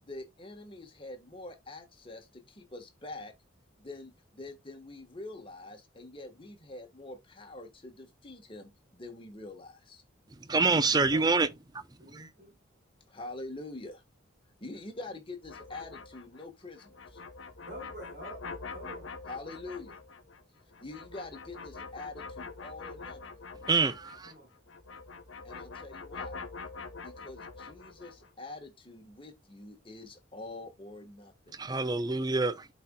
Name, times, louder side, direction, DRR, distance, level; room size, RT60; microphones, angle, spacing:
voice 1, 0.0-3.3 3.8-10.0 13.1-14.0 14.6-17.2 19.3-20.0 20.8-23.2 25.4-26.4 27.0-31.6, left 2 dB, 25° left, 1.3 m, -45 dB
voice 2, 10.3-11.5 12.1-12.3 23.7-24.3 31.5-32.7, right 3 dB, 20° right, 0.5 m, -27 dB
voice 3, 11.1-11.5 12.0-12.6 17.6-19.1 24.2-24.5, equal, 45° right, 3.8 m, -47 dB
sound 1, 15.4-24.4 24.7-28.3, left 4 dB, 75° left, 0.9 m, -45 dB
12.0 x 4.2 x 2.2 m
head